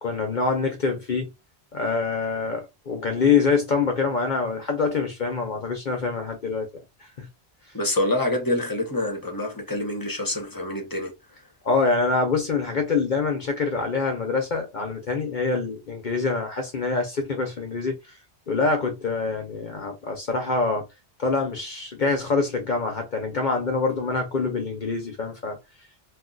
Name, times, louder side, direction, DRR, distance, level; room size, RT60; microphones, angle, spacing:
voice 1, 0.0-1.3 1.7-6.8 7.2-7.3 11.6-18.0 18.5-20.8 21.2-25.6, left 4 dB, 50° left, 0.8 m, -25 dB
voice 2, 7.7-11.1, left 1 dB, 20° left, 0.8 m, -26 dB
2.5 x 2.3 x 3.8 m
omnidirectional pair, 1.1 m